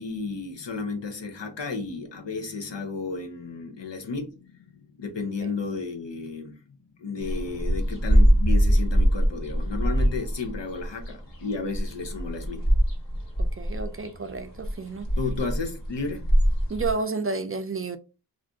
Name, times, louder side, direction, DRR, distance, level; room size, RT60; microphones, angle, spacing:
voice 1, 0.0-12.7 15.2-16.3, left 4 dB, 90° left, 0.7 m, -33 dB
sound 1, 7.2-16.9, equal, 55° left, 1.4 m, -23 dB
voice 2, 13.4-15.1 16.7-18.0, right 4 dB, 35° right, 0.4 m, -31 dB
2.5 x 2.4 x 3.5 m
wide cardioid pair, 40°, 42 cm